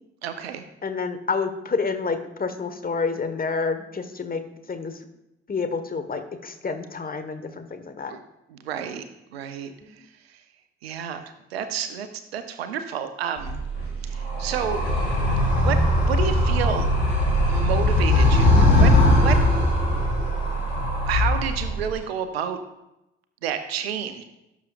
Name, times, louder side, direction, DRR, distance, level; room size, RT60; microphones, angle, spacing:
voice 1, 0.2-0.6 8.1-8.2 8.5-9.0 9.3-9.7 10.8-11.2 11.5-12.1 12.3-13.6 14.0-15.1 15.6-15.8 16.1-16.9 17.5-19.4 21.0-22.6 23.4-24.2, right 8 dB, 75° right, 9 dB, 0.8 m, -30 dB
voice 2, 0.8-4.4 4.7-4.9 5.5-8.1 9.8-9.9, left 4 dB, 30° left, 8 dB, 1.4 m, -28 dB
Animal, 13.4-22.0, left 1 dB, 85° left, 2.7 m, -20 dB
17.5 x 7.1 x 2.5 m, 0.92 s
figure-of-eight pair, 40°, 31 cm